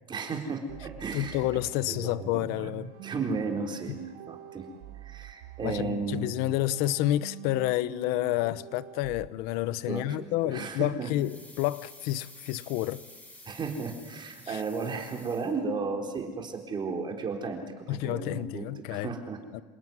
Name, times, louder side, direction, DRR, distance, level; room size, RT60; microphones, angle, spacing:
voice 1, 0.1-1.4 1.9-2.7 3.0-4.7 5.0-6.3 9.9-11.1 13.5-18.6 18.9-19.4, right 4 dB, 25° right, 4.0 m, -34 dB
sound 1, 0.7-9.3, right 14 dB, 70° right, 1.3 m, -45 dB
voice 2, 1.1-2.9 3.9-4.0 5.6-13.0 14.5-14.6 17.9-19.1 19.5-19.6, left 15 dB, 70° left, 1.0 m, -29 dB
sound 2, 11.1-15.9 16.2-16.3, left 1 dB, 10° left, 5.9 m, -51 dB
27.0 x 18.5 x 9.6 m
cardioid pair, 135°, 17 cm